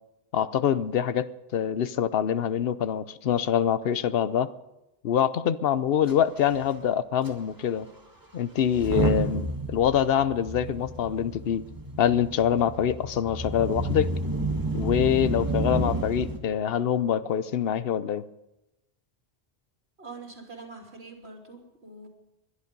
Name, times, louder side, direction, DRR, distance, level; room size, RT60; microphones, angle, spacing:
voice 1, 0.3-4.5 5.0-7.9 8.3-11.6 12.0-14.1 14.7-18.3, left 9 dB, 70° left, 0.9 m, -25 dB
Motor vehicle (road) / Engine starting / Accelerating revving vroom, 6.1-6.2 6.4-6.6 7.2-7.3 8.6-16.4, right 1 dB, 20° right, 1.8 m, -30 dB
voice 2, 20.0-22.1, right 3 dB, 90° right, 3.4 m, -44 dB
21.0 x 11.5 x 5.3 m
omnidirectional pair, 1.1 m